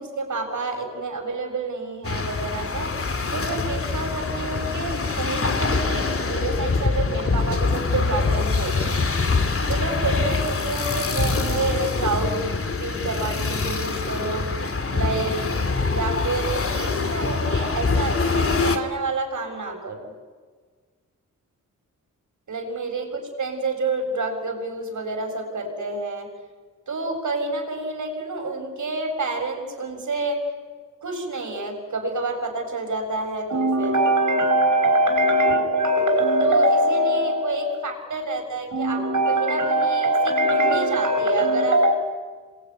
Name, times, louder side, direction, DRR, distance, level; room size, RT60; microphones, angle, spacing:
voice 1, 0.0-2.9 3.3-8.8 9.7-12.4 12.8-14.5 14.9-15.4 15.9-20.1 22.5-26.3 26.9-30.4 31.0-41.9, right 1 dB, 60° right, 3 dB, 7.2 m, -25 dB
sound 1, 2.0-18.8, left 4 dB, 40° left, 2.7 m, -24 dB
27.5 x 22.0 x 9.7 m, 1.5 s
cardioid pair, 60°, 34 cm